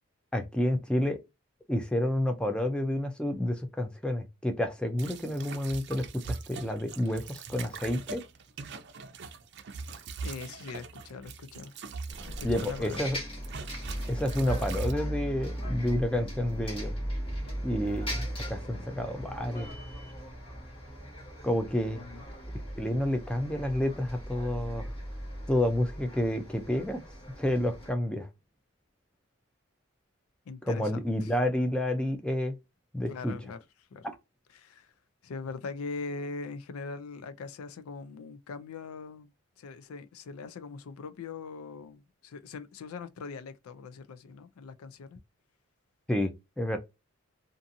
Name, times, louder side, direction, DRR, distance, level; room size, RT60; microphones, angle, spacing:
voice 1, 0.3-1.2 1.7-8.2 12.4-13.2 14.1-16.9 17.6-19.7 21.4-22.0 22.8-24.9 25.5-27.0 27.4-28.3 30.6-32.5 32.9-33.3 46.1-46.3 46.6-46.8, left 1 dB, 5° left, 0.4 m, -29 dB
sound 1, 5.0-13.1 13.4-14.9, right 4 dB, 50° right, 0.5 m, -41 dB
voice 2, 10.2-11.7 12.4-13.2 21.9-22.2 30.5-31.3 33.1-33.6 33.9-34.1 34.5-34.9 35.2-45.2, left 4 dB, 90° left, 0.4 m, -41 dB
Bus, 12.1-27.9, equal, 25° left, 1.2 m, -38 dB
2.6 x 2.5 x 2.6 m
head